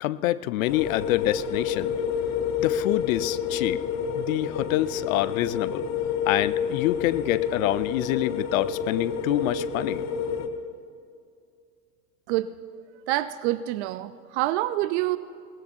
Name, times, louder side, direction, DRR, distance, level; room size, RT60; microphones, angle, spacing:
voice 1, 0.0-1.9 2.6-3.8 4.2-5.9 6.2-10.0, left 16 dB, 60° left, 17 dB, 0.6 m, -26 dB
sound 1, 0.7-10.5, left 7 dB, 35° left, 1.1 m, -29 dB
voice 2, 13.1-15.2, right 15 dB, 45° right, 15 dB, 0.5 m, -26 dB
21.0 x 18.0 x 2.6 m, 2.3 s
hypercardioid pair, 90°, 48 cm